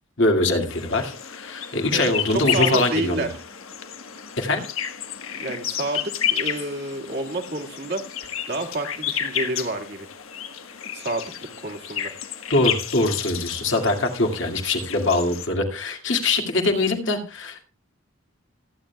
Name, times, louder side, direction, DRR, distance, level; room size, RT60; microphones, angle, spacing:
voice 1, 0.2-3.3 4.4-4.6 12.5-17.6, left 2 dB, 65° left, 3 dB, 2.1 m, -23 dB
sound 1, 0.7-15.5, left 9 dB, 85° left, 1.3 m, -31 dB
voice 2, 1.9-3.3 5.4-8.0 8.5-10.1 10.9-12.1, right 2 dB, 50° right, 3 dB, 1.9 m, -29 dB
27.0 x 9.1 x 2.3 m, 0.32 s
head